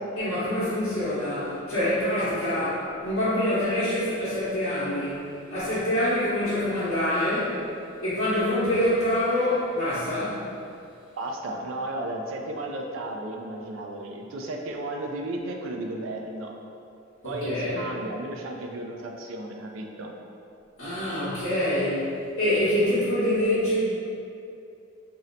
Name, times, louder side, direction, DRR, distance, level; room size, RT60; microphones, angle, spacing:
voice 1, 0.2-5.2 5.5-7.6 8.0-10.4 17.2-17.8 20.8-23.8, left 1 dB, 65° left, -15 dB, 0.9 m, -25 dB
voice 2, 11.2-16.6 17.2-20.1, right 1 dB, 75° right, 1 dB, 0.4 m, -34 dB
2.7 x 2.1 x 3.8 m, 2.6 s
head